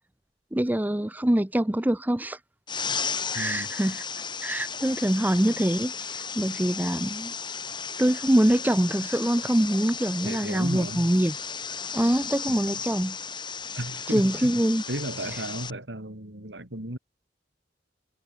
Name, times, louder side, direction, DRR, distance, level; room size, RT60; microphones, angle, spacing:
voice 1, 0.5-2.4 3.3-4.0 4.4-7.3 8.0-11.3 11.9-13.2 14.1-14.8, right 1 dB, 10° right, 0.6 m, -24 dB
sound 1, 2.7-15.7, left 6 dB, 25° left, 5.4 m, -34 dB
voice 2, 3.3-3.7 10.2-11.1 12.5-12.8 13.8-14.5 14.9-17.0, right 1 dB, 80° right, 4.6 m, -34 dB
head